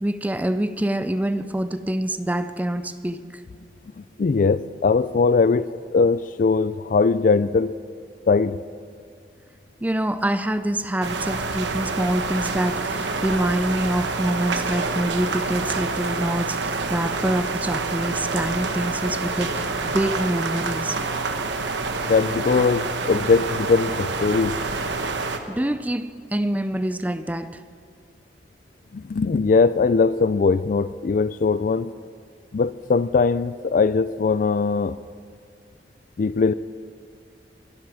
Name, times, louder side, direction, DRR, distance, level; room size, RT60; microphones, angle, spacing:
voice 1, 0.0-3.4 9.8-21.0 25.2-27.6, right 1 dB, 10° right, 0.5 m, -26 dB
voice 2, 4.0-7.8 8.3-8.6 22.1-24.6 28.9-31.9 32.5-35.0 36.2-36.5, left 4 dB, 50° left, 0.4 m, -20 dB
sound 1, 11.0-25.4, right 3 dB, 90° right, 1.1 m, -27 dB
23.5 x 12.0 x 4.9 m
head